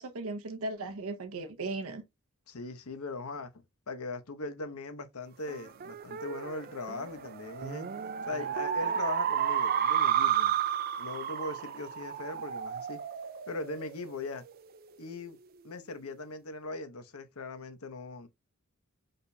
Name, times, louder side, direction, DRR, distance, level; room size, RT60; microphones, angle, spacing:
voice 1, 0.0-2.0, right 2 dB, 75° right, 0.8 m, -37 dB
voice 2, 2.5-7.9 8.3-10.5 11.0-13.0 13.5-14.4 15.0-15.4 15.6-18.3, left 3 dB, 80° left, 0.9 m, -40 dB
sound 1, 5.5-14.3, right 9 dB, 45° right, 0.4 m, -32 dB
5.1 x 4.2 x 2.2 m
head